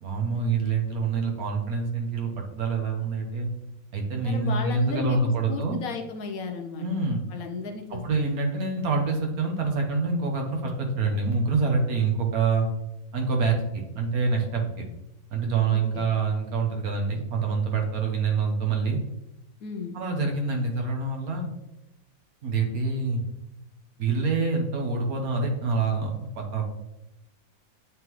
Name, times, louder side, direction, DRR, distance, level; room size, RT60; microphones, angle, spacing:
voice 1, 0.0-3.5 3.9-5.8 6.8-7.2 7.9-12.7 13.1-14.6 15.3-19.0 19.9-21.5 22.4-23.2 24.0-26.6, right 4 dB, 55° right, 2 dB, 1.3 m, -26 dB
voice 2, 4.2-5.2 5.5-6.9 7.3-8.2 15.7-16.1 19.6-20.0, left 5 dB, 65° left, 4 dB, 0.9 m, -34 dB
8.9 x 3.7 x 3.1 m, 0.91 s
omnidirectional pair, 2.0 m